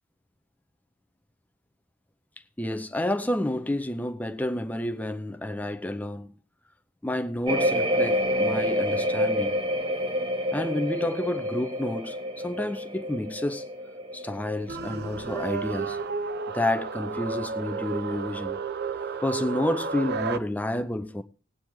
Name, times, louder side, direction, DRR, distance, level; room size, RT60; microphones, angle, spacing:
voice 1, 2.6-6.4 7.0-9.6 10.5-13.7 14.1-16.0 16.5-18.6 19.2-21.2, left 1 dB, 5° left, 0.6 m, -30 dB
sound 1, 7.5-16.1 16.4-16.9, equal, 25° right, 0.8 m, -28 dB
sound 2, 14.7-20.4, right 4 dB, 50° right, 0.5 m, -32 dB
19.0 x 8.7 x 3.1 m
head